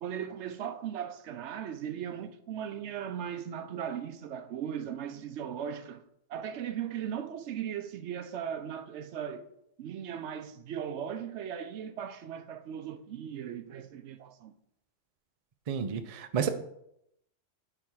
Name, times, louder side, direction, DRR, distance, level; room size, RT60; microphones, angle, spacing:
voice 1, 0.0-9.5 9.8-14.5, right 9 dB, 70° right, 0.8 m, -38 dB
voice 2, 15.7-16.5, right 7 dB, 45° right, 0.5 m, -30 dB
9.8 x 3.6 x 4.6 m
omnidirectional pair, 1.3 m